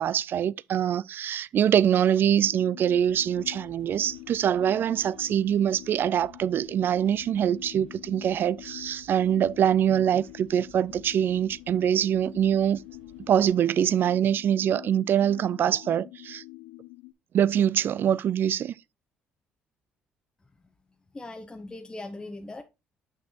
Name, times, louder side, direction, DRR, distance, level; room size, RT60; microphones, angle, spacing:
voice 1, 0.0-12.8 13.3-16.4 17.3-18.7, right 9 dB, 55° right, 0.3 m, -24 dB
sound 1, 2.4-17.1, left 20 dB, 85° left, 0.5 m, -46 dB
Bus, 2.9-13.5, right 1 dB, 90° right, 1.4 m, -57 dB
voice 2, 21.1-22.6, left 2 dB, 20° left, 0.8 m, -39 dB
6.9 x 6.1 x 2.8 m
supercardioid pair, 75°, 4 cm